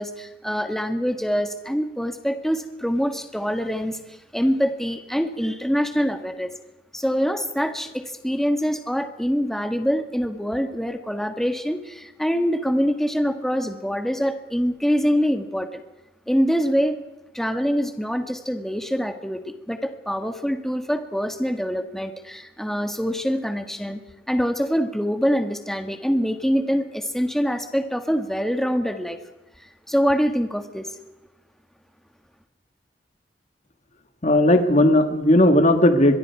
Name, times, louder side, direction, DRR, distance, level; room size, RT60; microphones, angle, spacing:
voice 1, 0.0-6.5 6.9-15.8 16.3-17.0 17.3-24.0 24.3-29.2 29.9-30.9, equal, ahead, 6 dB, 1.7 m, -24 dB
voice 2, 34.2-36.2, left 1 dB, 40° left, 7 dB, 1.9 m, -16 dB
25.5 x 23.0 x 4.7 m, 1.0 s
head